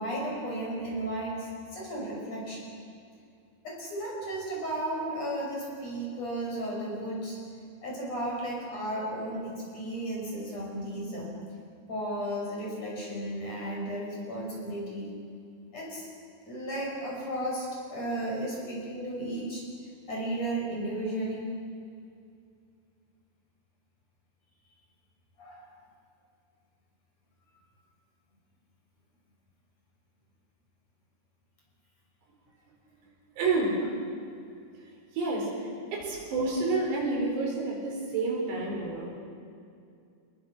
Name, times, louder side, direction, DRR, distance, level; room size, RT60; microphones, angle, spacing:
voice 1, 0.0-2.7 3.6-7.4 7.8-11.3 11.9-15.1 15.7-16.1 16.4-19.6 20.1-21.5 25.4-25.7, right 1 dB, 40° left, -3 dB, 7.0 m, -34 dB
voice 2, 33.4-33.9 35.1-39.2, right 3 dB, 80° right, -1 dB, 6.7 m, -29 dB
27.5 x 21.0 x 6.3 m, 2.4 s
omnidirectional pair, 4.8 m